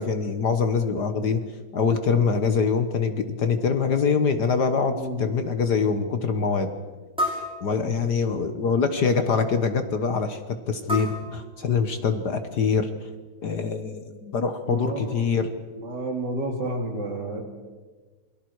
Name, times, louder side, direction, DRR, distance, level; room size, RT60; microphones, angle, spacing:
voice 1, 0.0-1.4 1.7-6.7 7.6-13.1 13.4-15.5, left 5 dB, 55° left, 9 dB, 1.6 m, -24 dB
sound 1, 3.8-3.9 4.5-4.6 5.2-5.4 7.2-8.4 10.9-12.2, left 1 dB, ahead, 5.8 m, -32 dB
voice 2, 4.9-5.3 7.8-7.9 14.7-15.2 15.8-17.4, right 1 dB, 55° right, 2 dB, 3.7 m, -30 dB
28.5 x 23.0 x 4.8 m, 1.3 s
omnidirectional pair, 2.3 m